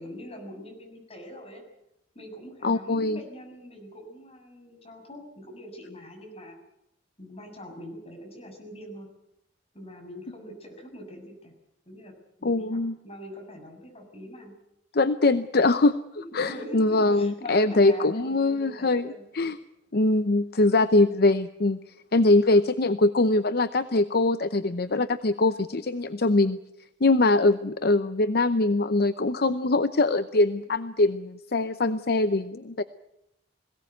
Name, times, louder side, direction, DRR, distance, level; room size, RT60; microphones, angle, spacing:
voice 1, 0.0-1.6 2.2-6.6 7.2-9.1 9.7-11.5 11.9-12.1 12.4-14.5 16.3-19.3, equal, 35° left, 2 dB, 6.9 m, -43 dB
voice 2, 2.6-3.2 12.4-12.9 14.9-15.9 16.3-19.6 19.9-21.8 22.1-26.6 27.0-32.8, left 2 dB, 60° left, 12 dB, 0.7 m, -22 dB
22.0 x 17.0 x 9.2 m, 0.83 s
head